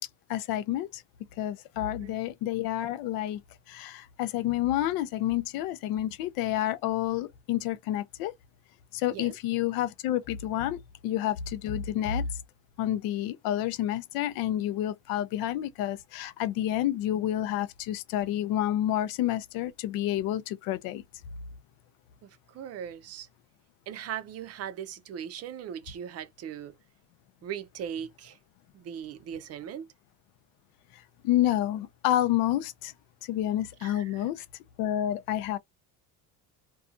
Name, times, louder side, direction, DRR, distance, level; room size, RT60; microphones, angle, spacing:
voice 1, 0.3-1.0 1.4-3.4 3.7-8.3 8.9-12.3 12.8-21.0 30.9-32.9 33.2-34.4 34.8-35.6, left 12 dB, 70° left, 0.6 m, -29 dB
voice 2, 22.2-23.3 23.9-26.7 27.4-28.4 28.7-29.9 33.8-34.2, right 9 dB, 45° right, 0.5 m, -39 dB
2.6 x 2.3 x 2.5 m
cardioid pair, 125°, 37 cm